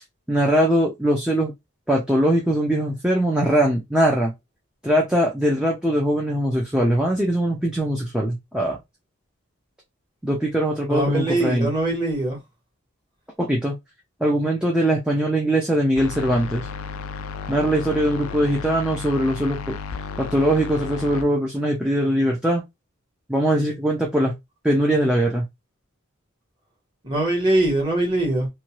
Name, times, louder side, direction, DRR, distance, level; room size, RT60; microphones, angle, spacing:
voice 1, 0.3-1.5 1.9-4.3 4.8-8.8 10.2-11.7 13.4-13.7 14.2-16.7 17.5-19.8 20.2-22.6 23.3-24.3 24.6-25.5, right 1 dB, 5° right, 0.5 m, -21 dB
voice 2, 10.9-12.4 27.0-28.5, right 2 dB, 20° right, 1.4 m, -22 dB
sound 1, 16.0-21.2, left 5 dB, 80° left, 0.4 m, -33 dB
2.7 x 2.3 x 3.0 m
head